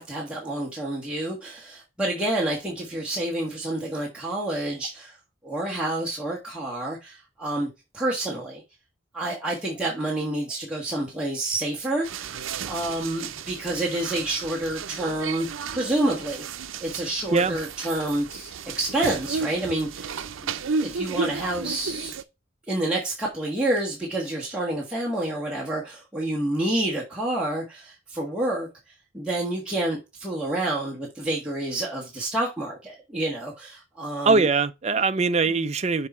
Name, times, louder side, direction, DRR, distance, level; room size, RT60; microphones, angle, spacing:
voice 1, 0.0-5.2 5.4-7.7 7.9-8.6 9.1-15.5 15.7-16.4 16.8-20.5 20.8-22.2 22.7-34.5, right 1 dB, 5° right, 1.5 m, -28 dB
sound 1, 12.0-22.2, right 5 dB, 85° right, 0.6 m, -33 dB
voice 2, 34.3-36.1, right 4 dB, 35° right, 0.4 m, -22 dB
6.6 x 4.1 x 4.3 m
head